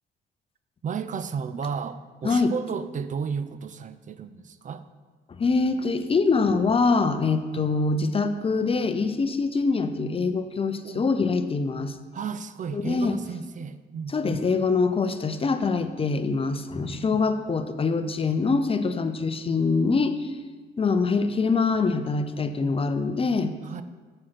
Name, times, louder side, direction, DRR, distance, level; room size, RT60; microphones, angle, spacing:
voice 1, 0.8-4.8 10.8-11.1 12.1-14.4 16.9-17.3 23.7-23.8, right 6 dB, 40° right, 13 dB, 0.4 m, -33 dB
voice 2, 2.2-2.5 5.4-12.0 12.7-13.2 14.1-20.4 20.8-23.6, left 4 dB, 30° left, 10 dB, 0.6 m, -24 dB
7.5 x 4.8 x 5.8 m, 1.4 s
cardioid pair, 90°, 20 cm